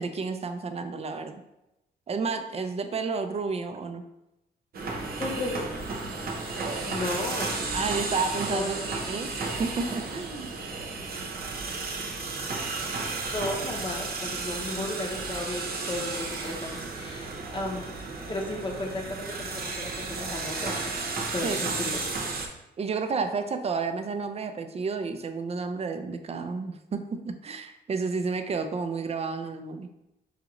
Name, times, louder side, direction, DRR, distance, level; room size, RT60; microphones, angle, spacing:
voice 1, 0.0-1.4 2.1-4.0 7.7-9.3 9.6-10.5 21.4-21.6 22.8-29.9, right 4 dB, 35° right, 7 dB, 0.4 m, -31 dB
sound 1, 4.7-22.5, right 3 dB, 60° right, 0.8 m, -33 dB
voice 2, 5.2-5.7 6.9-7.6 8.4-8.8 13.3-17.9 18.3-20.9 21.3-22.2, left 2 dB, 30° left, 0 dB, 0.8 m, -34 dB
4.9 x 2.5 x 3.0 m, 0.91 s
cardioid pair, 90°, 18 cm